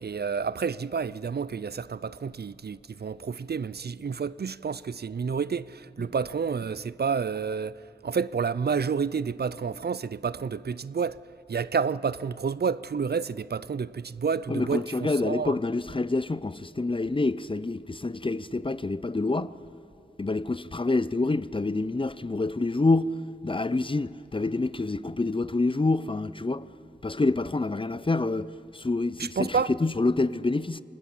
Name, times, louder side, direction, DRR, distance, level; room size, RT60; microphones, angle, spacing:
voice 1, 0.0-11.2 11.5-15.6 29.2-29.7, right 6 dB, 60° right, 0.5 m, -29 dB
voice 2, 14.5-19.5 20.2-23.1 23.4-26.7 27.0-30.8, left 3 dB, 30° left, 0.5 m, -27 dB
25.5 x 20.0 x 7.3 m
wide cardioid pair, 60°, 18 cm